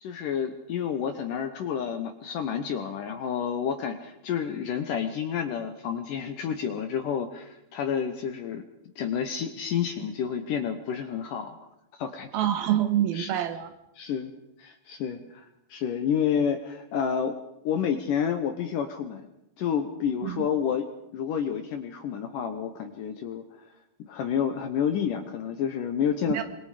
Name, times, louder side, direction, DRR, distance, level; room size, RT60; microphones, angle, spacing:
voice 1, 0.0-8.6 9.0-11.7 12.0-12.3 13.1-13.3 14.0-14.3 14.6-15.5 15.7-17.4 17.6-19.2 19.6-20.9 21.1-23.4 24.1-26.4, left 8 dB, 70° left, 8 dB, 2.1 m, -29 dB
voice 2, 12.3-13.7 20.2-20.5 26.3-26.4, right 11 dB, 70° right, 10 dB, 2.7 m, -26 dB
26.0 x 22.0 x 5.0 m, 0.85 s
omnidirectional pair, 4.8 m